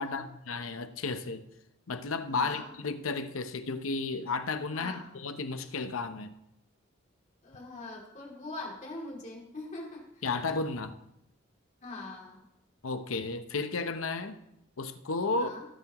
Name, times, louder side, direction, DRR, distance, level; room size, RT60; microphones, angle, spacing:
voice 1, 0.0-1.4 1.9-6.3 10.2-11.0 12.8-14.4 14.8-15.5, left 3 dB, 75° left, 0.8 m, -33 dB
voice 2, 2.3-2.7 4.7-5.1 7.4-10.3 11.8-12.5 15.3-15.7, left 2 dB, 35° left, 2.6 m, -42 dB
17.5 x 7.4 x 3.0 m
head